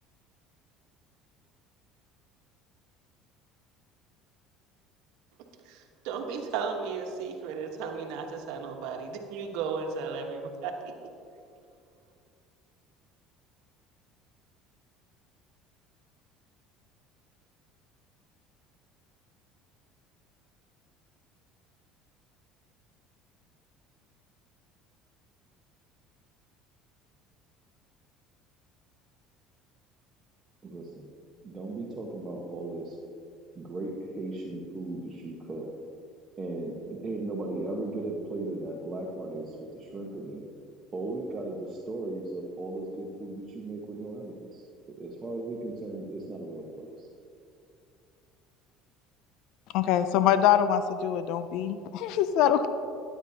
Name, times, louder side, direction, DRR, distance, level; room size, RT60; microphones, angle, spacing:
voice 1, 5.7-10.9, right 5 dB, 75° right, 3 dB, 1.2 m, -35 dB
voice 2, 30.6-31.1 31.4-33.0 33.5-35.7 36.4-40.4 40.9-44.6 45.0-47.1, right 2 dB, 30° right, -3 dB, 1.3 m, -36 dB
voice 3, 49.7-52.7, left 10 dB, 70° left, 11 dB, 0.5 m, -24 dB
13.0 x 10.0 x 2.9 m, 2.5 s
supercardioid pair, 100°, 0 cm